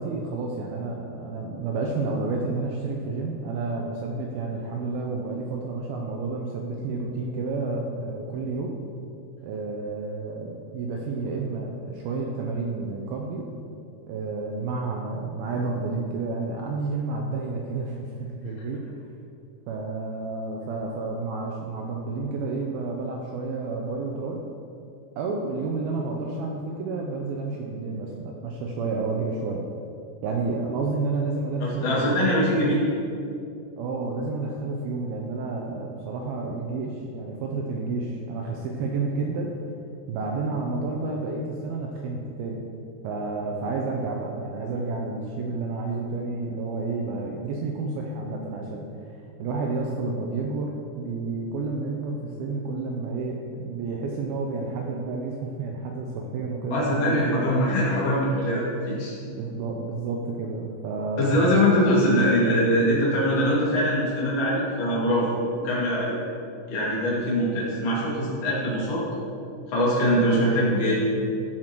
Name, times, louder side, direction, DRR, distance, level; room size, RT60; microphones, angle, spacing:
voice 1, 0.0-8.7 9.4-13.5 14.1-18.8 19.7-24.5 25.2-29.6 30.2-32.8 33.8-39.5 40.1-42.7 43.0-57.4 59.3-61.8, right 3 dB, 80° right, 0 dB, 2.2 m, -30 dB
voice 2, 31.6-32.8 56.7-59.2 61.2-65.3 65.6-66.1 66.7-69.0 69.7-70.9, equal, 35° left, -7 dB, 2.7 m, -22 dB
14.0 x 5.9 x 4.6 m, 2.6 s
omnidirectional pair, 5.2 m